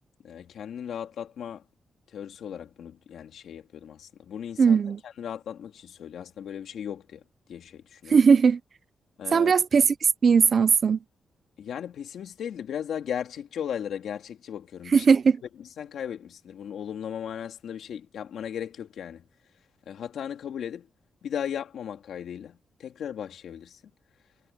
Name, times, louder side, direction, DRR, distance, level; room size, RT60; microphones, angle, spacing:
voice 1, 0.2-1.6 2.1-7.2 7.5-8.2 9.2-9.5 11.6-15.1 15.6-19.2 19.8-20.9 21.2-23.8, left 9 dB, 80° left, 2.9 m, -36 dB
voice 2, 4.6-5.0 8.1-8.6 9.3-9.9 10.2-11.0 14.9-15.4, right 6 dB, 40° right, 0.6 m, -18 dB
wide cardioid pair, 180°, 0 cm